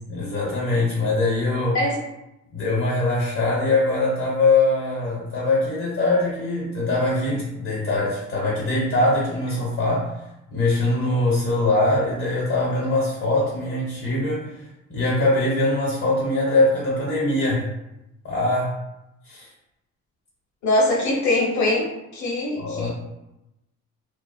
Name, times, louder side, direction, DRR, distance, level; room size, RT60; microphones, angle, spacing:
voice 1, 0.1-1.8 2.5-10.1 10.5-14.6 14.9-17.7 18.2-18.7 19.3-19.5 22.6-22.9, left 2 dB, 45° left, -6 dB, 1.0 m, -22 dB
voice 2, 20.6-22.9, left 1 dB, 70° left, -3 dB, 0.9 m, -22 dB
2.5 x 2.3 x 2.2 m, 0.90 s
cardioid pair, 90°, 30 cm